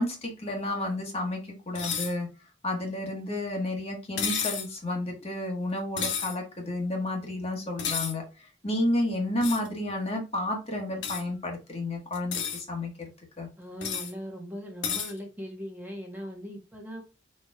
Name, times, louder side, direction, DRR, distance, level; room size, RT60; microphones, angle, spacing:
voice 1, 0.0-2.3 2.6-13.1 13.4-13.5, left 1 dB, 35° left, 1 dB, 1.4 m, -31 dB
sound 1, 1.7-2.1 4.2-4.7 6.0-6.3 7.8-8.1 9.4-9.7 11.0-11.2 12.1-12.6 13.8-14.1 14.8-15.1, left 7 dB, 80° left, 1.1 m, -31 dB
voice 2, 13.6-17.0, equal, 10° right, 0 dB, 1.3 m, -39 dB
5.0 x 4.4 x 2.4 m, 0.30 s
head